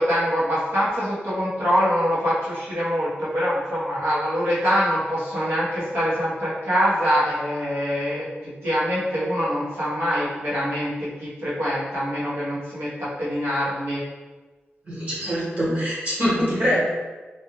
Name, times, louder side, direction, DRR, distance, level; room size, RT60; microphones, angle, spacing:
voice 1, 0.0-8.3 8.6-14.0, equal, 75° right, -10 dB, 1.2 m, -24 dB
voice 2, 14.9-16.8, equal, 40° right, -8 dB, 1.3 m, -23 dB
4.1 x 2.4 x 3.2 m, 1.3 s
wide cardioid pair, 180°, 4 cm